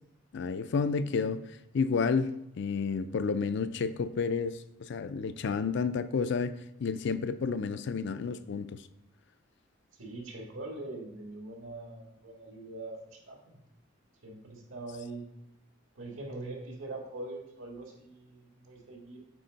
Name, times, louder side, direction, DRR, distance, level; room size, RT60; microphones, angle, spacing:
voice 1, 0.3-1.4 1.7-8.8, left 5 dB, 60° left, 13 dB, 0.4 m, -31 dB
voice 2, 9.9-13.6 14.2-15.2 15.9-19.2, right 2 dB, 75° right, 0 dB, 1.7 m, -43 dB
8.4 x 4.2 x 3.9 m, 0.82 s
head